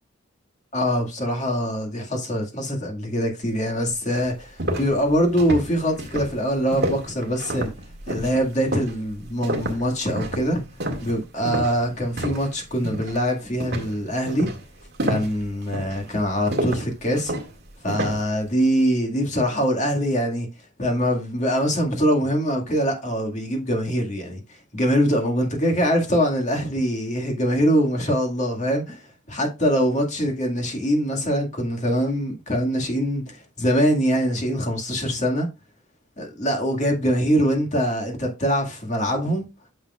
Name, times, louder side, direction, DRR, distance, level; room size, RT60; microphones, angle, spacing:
voice 1, 0.7-7.7 8.1-10.6 11.0-14.5 15.0-17.3 17.8-20.5 20.8-24.4 24.7-29.0 29.3-35.5 36.2-39.5, equal, 35° left, 2.0 m, -23 dB
sound 1, 3.6-3.7 4.1-12.5 12.8-13.2 13.6-18.3, right 1 dB, 50° right, 2.0 m, -29 dB
9.5 x 6.6 x 2.4 m
head